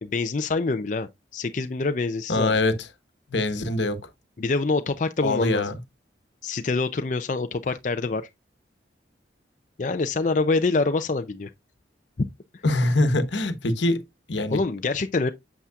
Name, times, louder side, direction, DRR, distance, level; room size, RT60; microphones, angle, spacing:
voice 1, 0.0-2.5 4.4-5.7 6.4-8.3 9.8-11.5 12.2-12.3 14.5-15.3, left 3 dB, 40° left, 0.5 m, -25 dB
voice 2, 2.3-2.8 3.3-4.0 5.2-5.8 12.6-14.0 14.3-14.6, left 2 dB, 80° left, 1.1 m, -23 dB
8.3 x 7.1 x 2.3 m
head